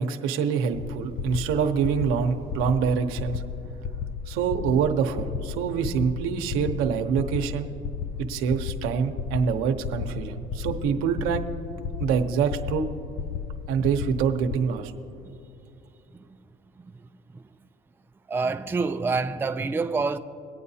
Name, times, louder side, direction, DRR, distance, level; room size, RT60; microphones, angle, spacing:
voice 1, 0.0-3.4 4.3-7.7 8.3-11.4 12.0-12.9 13.7-14.9, right 6 dB, 80° right, 0.9 m, -25 dB
sound 1, 0.7-14.6, left 6 dB, 55° left, 0.5 m, -34 dB
voice 2, 18.3-20.2, right 4 dB, 10° right, 0.4 m, -27 dB
23.0 x 8.7 x 2.8 m
cardioid pair, 95°, 21 cm